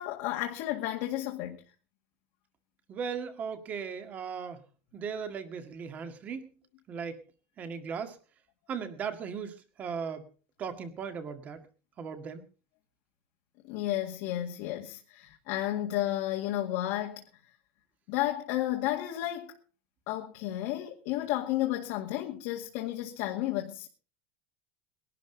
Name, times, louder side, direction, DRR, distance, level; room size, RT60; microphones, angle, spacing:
voice 1, 0.0-1.6 13.7-17.2 18.1-19.6 20.1-23.9, left 14 dB, 55° left, 2.1 m, -32 dB
voice 2, 2.9-4.6 4.9-6.5 6.9-7.2 7.6-8.2 8.7-10.3 10.6-11.7 12.0-12.4, right 6 dB, 25° right, 1.9 m, -37 dB
21.0 x 12.0 x 3.9 m
supercardioid pair, 170°, 6 cm